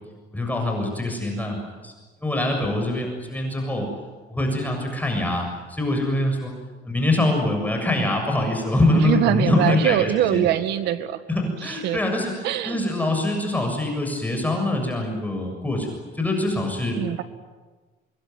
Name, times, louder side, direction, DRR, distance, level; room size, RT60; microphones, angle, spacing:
voice 1, 0.3-1.6 1.8-1.9 2.2-3.9 4.3-6.5 6.9-10.5 11.3-12.3 12.6-15.9 16.1-17.0, left 2 dB, 10° left, 2 dB, 7.1 m, -24 dB
voice 2, 8.9-11.2 11.6-12.0 12.4-12.8 17.0-17.2, right 12 dB, 85° right, 10 dB, 1.9 m, -23 dB
26.0 x 22.0 x 9.4 m, 1.3 s
cardioid pair, 110°, 17 cm